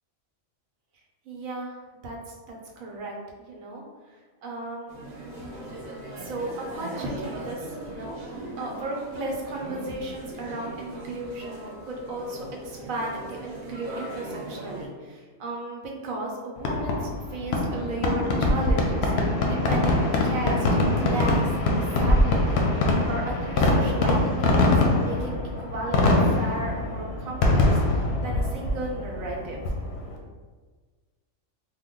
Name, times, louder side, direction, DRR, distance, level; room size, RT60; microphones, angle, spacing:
voice 1, 1.2-1.8 2.0-4.9 6.2-20.7 21.0-29.6, right 2 dB, 85° right, -1 dB, 1.1 m, -35 dB
sound 1, 4.9-14.9, right 2 dB, 45° right, 0.6 m, -39 dB
Fireworks, 16.6-30.2, left 2 dB, 65° left, 0.7 m, -23 dB
2.9 x 2.2 x 3.6 m, 1.4 s
omnidirectional pair, 1.4 m